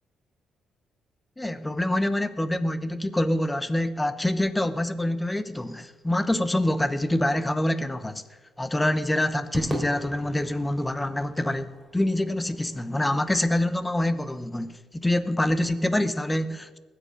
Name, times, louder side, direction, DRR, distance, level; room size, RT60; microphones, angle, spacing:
voice 1, 1.4-8.2 8.6-16.8, left 1 dB, 10° left, 0.9 m, -26 dB
Crowd / Fireworks, 9.5-14.0, right 1 dB, 5° right, 3.1 m, -40 dB
20.0 x 7.8 x 5.2 m
cardioid pair, 90°, 0 cm